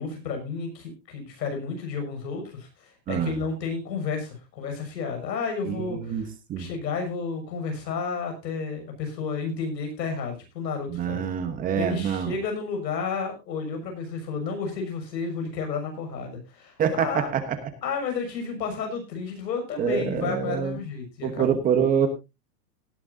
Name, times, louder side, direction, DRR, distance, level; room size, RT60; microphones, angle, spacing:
voice 1, 0.0-6.2 6.6-11.2 11.7-17.3 17.8-21.5, left 5 dB, 85° left, 4 dB, 6.7 m, -31 dB
voice 2, 5.6-6.2 6.5-6.7 10.9-12.3 16.8-17.4 19.8-20.8 21.2-22.1, right 8 dB, 15° right, 9 dB, 1.1 m, -25 dB
18.0 x 11.5 x 2.7 m, 0.25 s
supercardioid pair, 160°, 49 cm